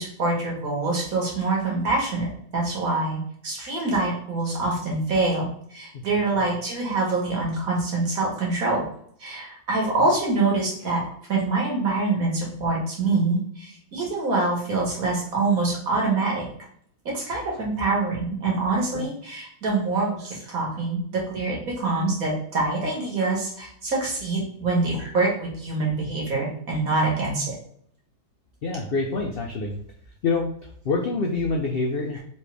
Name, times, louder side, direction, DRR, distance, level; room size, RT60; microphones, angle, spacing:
voice 1, 0.0-2.3 2.5-8.8 9.2-11.0 11.3-16.4 17.1-27.5, right 3 dB, 60° right, -2 dB, 1.9 m, -25 dB
voice 2, 28.6-29.8 30.2-30.5 30.8-32.2, left 3 dB, 80° left, 1 dB, 0.5 m, -26 dB
4.3 x 3.1 x 3.3 m, 0.63 s
omnidirectional pair, 1.7 m